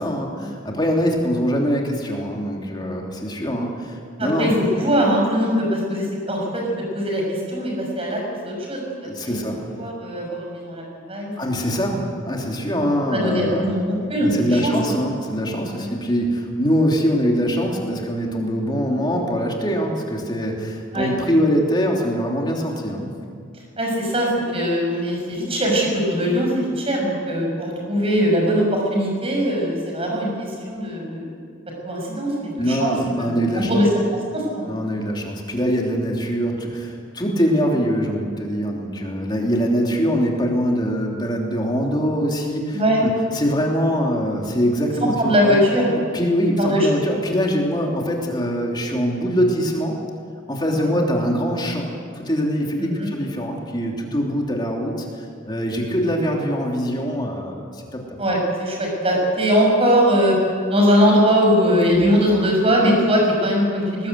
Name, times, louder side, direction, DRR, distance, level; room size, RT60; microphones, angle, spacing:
voice 1, 0.0-4.5 9.0-9.6 11.4-13.7 14.2-23.1 32.6-33.8 34.6-45.6 46.1-49.9 50.5-55.1 55.4-58.2, equal, 20° left, 0 dB, 3.1 m, -23 dB
voice 2, 4.2-6.6 6.9-9.4 9.8-11.3 13.1-15.0 15.7-15.9 20.9-21.1 23.8-31.3 31.8-32.9 33.2-33.9 34.3-34.7 42.7-43.0 45.0-45.9 46.6-47.2 50.7-50.9 52.8-53.1 58.2-60.4 60.7-64.1, equal, 30° right, 0 dB, 6.3 m, -21 dB
20.0 x 20.0 x 8.2 m, 2.1 s
head